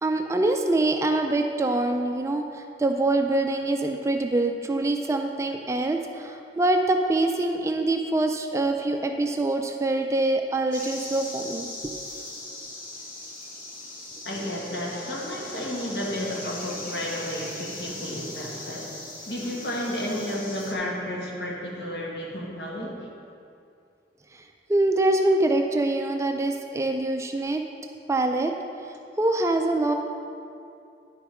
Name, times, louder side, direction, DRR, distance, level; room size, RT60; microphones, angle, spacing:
voice 1, 0.0-12.0 24.3-24.4 24.7-27.6 28.1-28.5 29.2-29.9, right 2 dB, 15° right, 4 dB, 0.3 m, -24 dB
sound 1, 10.7-20.7, left 2 dB, 50° left, 1.0 m, -39 dB
voice 2, 14.2-18.9 19.3-22.9, equal, 70° left, -3 dB, 1.6 m, -32 dB
9.8 x 5.6 x 4.3 m, 2.5 s
head